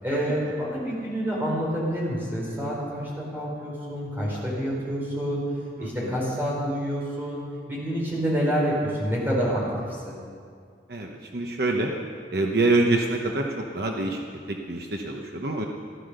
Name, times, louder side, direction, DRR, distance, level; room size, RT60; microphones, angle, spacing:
voice 1, 0.0-7.4 7.7-9.6 9.9-10.2, equal, 10° right, -5 dB, 4.5 m, -28 dB
voice 2, 5.8-6.1 10.9-11.9 12.3-14.2 14.5-15.7, right 2 dB, 60° right, 1 dB, 1.0 m, -26 dB
15.5 x 12.5 x 6.7 m, 2.2 s
head